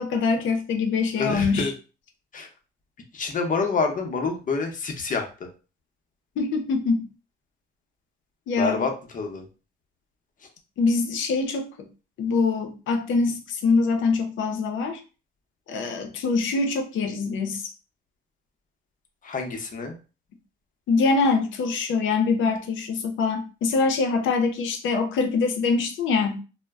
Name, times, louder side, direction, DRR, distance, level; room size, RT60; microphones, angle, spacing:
voice 1, 0.0-1.7 6.4-7.1 8.5-8.8 10.8-11.9 12.2-15.0 15.7-17.7 20.9-26.4, left 4 dB, 75° left, 0.6 m, -24 dB
voice 2, 1.2-1.7 2.3-2.5 3.1-5.5 8.6-9.5 19.2-19.9, left 4 dB, 40° left, 0.7 m, -27 dB
2.1 x 2.0 x 3.4 m
cardioid pair, 90°, 20 cm